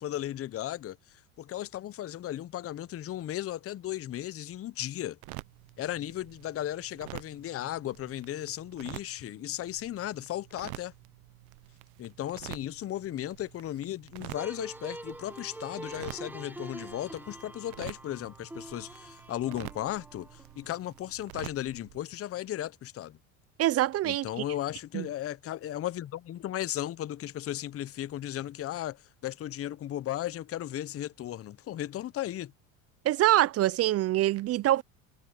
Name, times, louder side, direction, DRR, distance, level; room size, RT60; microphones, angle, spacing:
voice 1, 0.0-5.2 5.8-10.9 12.0-23.2 24.0-32.5, left 12 dB, 35° left, 0.7 m, -36 dB
sound 1, 5.2-22.0, right 23 dB, 80° right, 1.0 m, -48 dB
sound 2, 14.4-21.1, right 1 dB, 5° right, 1.2 m, -45 dB
voice 2, 23.6-24.3 24.9-25.1 33.0-34.8, right 14 dB, 35° right, 0.5 m, -24 dB
supercardioid pair, 90°, 42 cm